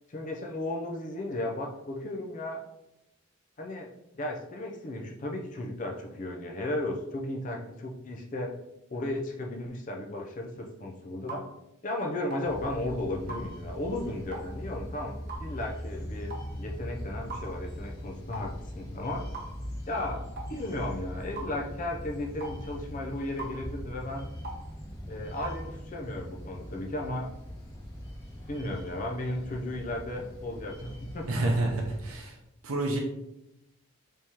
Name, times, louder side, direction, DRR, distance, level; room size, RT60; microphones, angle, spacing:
voice 1, 0.1-2.6 3.6-8.5 8.9-11.4 11.8-19.3 19.9-20.2 20.5-24.3 25.1-27.3 28.5-31.7, left 1 dB, 35° left, 1 dB, 0.5 m, -35 dB
sound 1, 11.3-11.5 12.3-12.5 13.3-13.5 14.3-14.5 15.3-15.5 16.3-16.5 17.3-17.5 18.3-18.5 19.3-19.5 20.4-20.5 21.4-21.5 22.4-22.6 23.4-23.6 24.4-24.6 25.4-25.6, right 3 dB, 45° right, 0.7 m, -39 dB
sound 2, 12.4-32.1, equal, 55° left, 1.4 m, -41 dB
voice 2, 31.3-32.4 32.6-33.0, right 2 dB, 85° right, 0 dB, 0.6 m, -28 dB
4.5 x 3.6 x 2.9 m, 0.88 s
head